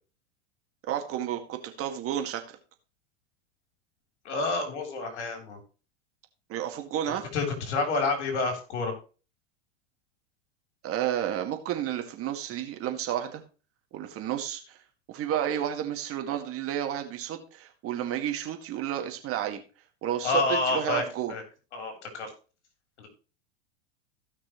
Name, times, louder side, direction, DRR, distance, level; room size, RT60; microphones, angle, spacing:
voice 1, 0.9-2.6 6.5-7.3 10.8-13.4 13.9-14.8 15.1-19.6 20.0-21.3, right 10 dB, 40° right, 5 dB, 2.0 m, -31 dB
voice 2, 4.2-5.6 7.1-8.9 20.2-21.0 21.3-21.4 21.7-22.3 23.0-23.1, left 3 dB, 80° left, 4 dB, 3.6 m, -29 dB
16.5 x 6.0 x 3.1 m, 0.35 s
hypercardioid pair, 100°, 34 cm